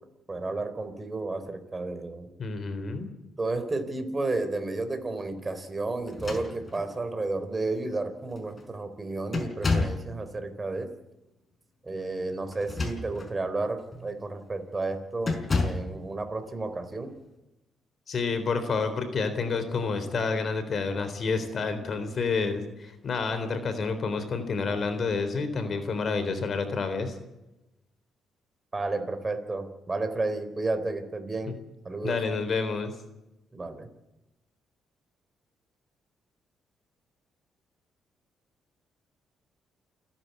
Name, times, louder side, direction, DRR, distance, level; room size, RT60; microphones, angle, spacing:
voice 1, 0.3-2.3 3.4-10.9 11.8-17.1 28.7-31.6 31.8-32.2 33.5-33.9, right 2 dB, 25° right, 8 dB, 3.9 m, -32 dB
voice 2, 2.4-3.1 18.1-27.2 31.5-31.6 32.0-32.9, left 4 dB, 50° left, 9 dB, 3.7 m, -29 dB
sound 1, 6.1-7.0 7.8-7.9 8.3-8.7 9.3-10.1 12.5-13.4 13.9-14.1 15.2-15.9, left 3 dB, 30° left, 5.4 m, -30 dB
28.5 x 11.0 x 8.4 m, 0.96 s
cardioid pair, 90°, 0 cm